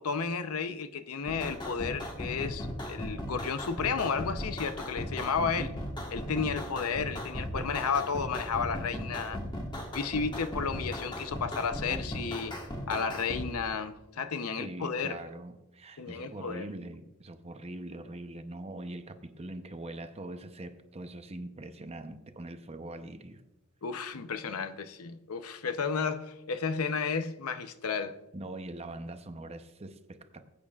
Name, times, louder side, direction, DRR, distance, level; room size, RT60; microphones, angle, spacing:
voice 1, 0.0-5.7 6.1-9.4 9.7-12.6 12.9-15.2 16.0-16.7 23.8-28.2, left 5 dB, 90° left, 0.7 m, -32 dB
sound 1, 1.3-13.5, equal, 20° left, 1.4 m, -37 dB
voice 2, 5.4-5.8 14.6-23.4 28.3-30.5, right 1 dB, 30° right, 0.7 m, -42 dB
20.0 x 8.6 x 2.4 m
head